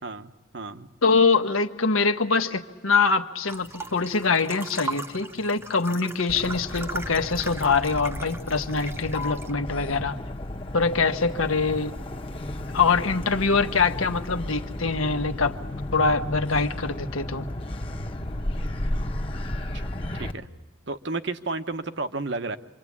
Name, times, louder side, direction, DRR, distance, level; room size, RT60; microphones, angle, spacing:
voice 1, 0.0-0.9 19.7-19.9 20.1-20.5 20.9-22.6, right 3 dB, 55° right, 8 dB, 1.0 m, -32 dB
voice 2, 1.0-10.2 10.7-11.9 12.7-15.6 15.9-17.5, left 4 dB, 85° left, 7 dB, 1.3 m, -24 dB
sound 1, 3.5-9.5, right 2 dB, 10° right, 0.9 m, -39 dB
Motor vehicle (road), 6.3-20.3, left 1 dB, 25° left, 1.1 m, -33 dB
27.0 x 25.0 x 8.6 m, 1.2 s
head